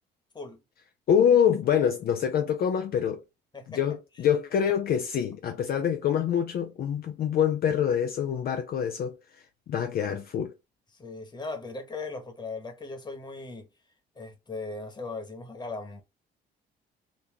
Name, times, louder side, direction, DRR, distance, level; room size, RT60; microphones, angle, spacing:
voice 1, 1.1-3.2 3.7-10.5, left 8 dB, 50° left, 0.5 m, -25 dB
voice 2, 10.9-13.7 14.1-16.0, left 3 dB, 20° left, 1.3 m, -38 dB
4.0 x 2.2 x 3.4 m
cardioid pair, 100°, 19 cm